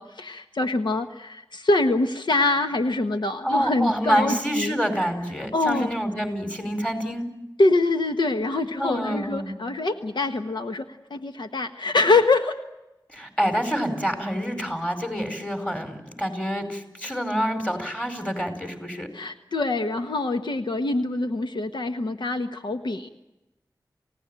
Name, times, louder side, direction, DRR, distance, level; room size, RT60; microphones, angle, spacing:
voice 1, 0.0-4.8 5.5-5.9 7.6-12.6 19.1-23.1, left 2 dB, 85° left, 6 dB, 1.3 m, -24 dB
voice 2, 3.4-7.3 8.8-9.5 13.1-19.1, equal, 15° left, 6 dB, 4.9 m, -27 dB
29.0 x 17.0 x 9.0 m, 0.98 s
wide cardioid pair, 65°, 8 cm